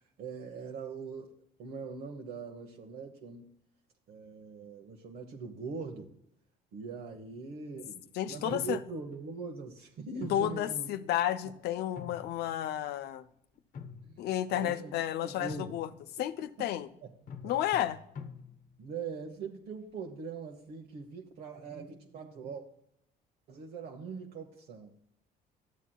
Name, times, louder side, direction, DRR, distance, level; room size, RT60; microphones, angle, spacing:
voice 1, 0.2-1.3 1.6-3.5 4.1-6.1 6.7-10.9 14.0-14.2 14.5-14.9 15.2-15.7 16.4-16.7 18.8-22.6 23.5-24.9, right 5 dB, 70° right, 1.0 m, -42 dB
sound 1, 7.1-7.6 8.4-9.2 10.2-11.3 11.7-12.9 13.5-14.4 15.5-16.2 17.3-18.9, left 6 dB, 50° left, 0.9 m, -47 dB
voice 2, 8.1-8.8 10.3-13.2 14.2-15.9 16.2-16.9 17.4-18.0, left 12 dB, 75° left, 0.6 m, -32 dB
12.5 x 7.3 x 2.3 m
cardioid pair, 110°, 17 cm